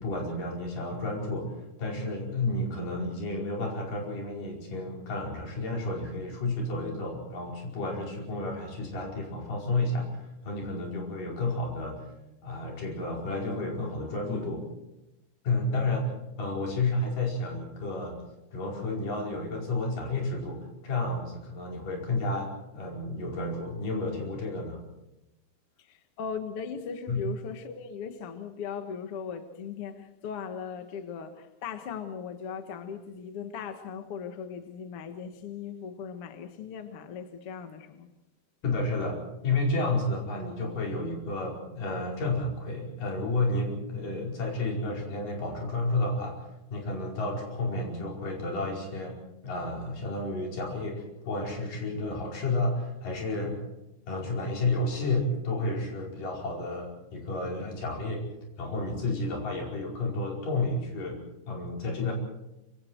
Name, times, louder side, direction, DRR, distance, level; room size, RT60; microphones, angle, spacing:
voice 1, 0.0-12.1 12.4-14.7 15.4-18.2 18.5-24.8 27.1-27.2 38.6-49.2 49.4-53.6 54.1-58.3 58.6-61.2 61.5-62.1, left 2 dB, 45° left, 6.4 m, -31 dB
voice 2, 25.8-38.1, left 6 dB, 70° left, 1.3 m, -38 dB
25.5 x 25.0 x 4.7 m
omnidirectional pair, 5.2 m